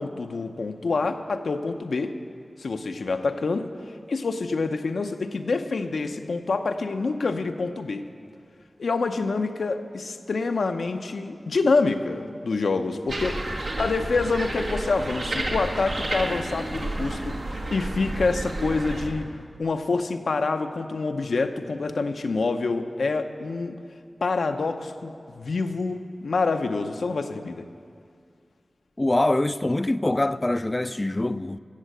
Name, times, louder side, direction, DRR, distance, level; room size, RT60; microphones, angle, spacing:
voice 1, 0.0-2.1 2.6-3.7 4.1-8.1 8.8-19.3 19.6-23.8 24.2-27.6, left 3 dB, 85° left, 0.7 m, -27 dB
sound 1, 13.1-19.1, right 1 dB, 90° right, 2.1 m, -31 dB
voice 2, 29.0-31.6, left 1 dB, 30° left, 0.4 m, -24 dB
15.0 x 7.4 x 7.8 m
cardioid pair, 50°, 0 cm